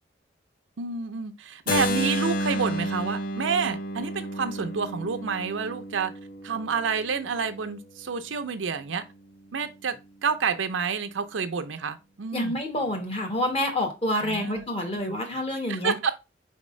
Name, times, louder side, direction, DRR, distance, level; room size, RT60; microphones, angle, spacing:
voice 1, 0.8-6.1 6.4-9.0 9.5-10.0 10.2-12.5 14.1-14.6 15.7-16.1, right 5 dB, 80° right, 0.5 m, -29 dB
Keyboard (musical), 1.7-7.5, equal, 50° left, 0.6 m, -31 dB
voice 2, 12.3-15.9, left 1 dB, 30° left, 1.1 m, -28 dB
4.6 x 3.6 x 3.1 m
head